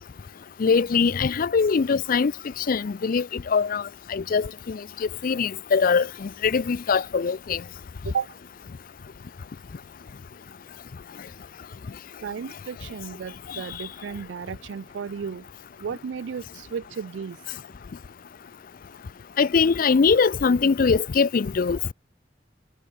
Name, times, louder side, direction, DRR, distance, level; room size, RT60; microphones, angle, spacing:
voice 1, 0.6-2.3 2.6-7.6 13.5-13.6 19.4-21.9, left 5 dB, 50° left, 0.4 m, -22 dB
voice 2, 12.2-15.5 15.8-17.4, right 6 dB, 85° right, 0.4 m, -34 dB
head